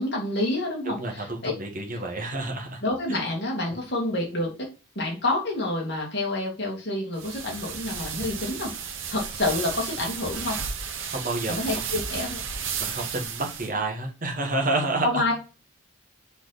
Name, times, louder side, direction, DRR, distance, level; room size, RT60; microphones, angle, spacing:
voice 1, 0.0-1.5 2.8-4.7 5.0-10.6 11.5-12.4 15.0-15.3, left 2 dB, 55° left, -2 dB, 2.4 m, -28 dB
voice 2, 0.8-2.8 3.7-3.8 11.1-11.6 12.8-15.3, right 2 dB, 40° right, 1 dB, 1.5 m, -29 dB
sound 1, 7.2-13.7, right 6 dB, 80° right, 1.1 m, -33 dB
6.9 x 4.3 x 4.1 m, 0.33 s
head